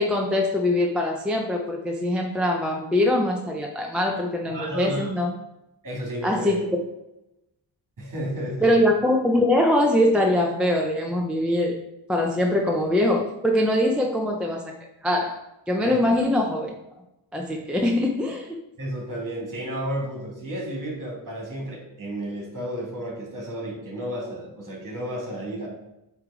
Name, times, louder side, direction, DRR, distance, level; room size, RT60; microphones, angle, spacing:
voice 1, 0.0-5.3 6.2-6.8 8.6-11.8 12.1-14.8 15.0-15.4 15.7-16.8 17.3-18.6, left 1 dB, ahead, 1 dB, 0.5 m, -22 dB
voice 2, 4.5-5.1 5.8-6.5 8.0-8.7 15.8-16.0 18.8-25.7, right 1 dB, 40° right, -2 dB, 2.4 m, -32 dB
8.3 x 3.2 x 4.9 m, 0.91 s
wide cardioid pair, 140°, 48 cm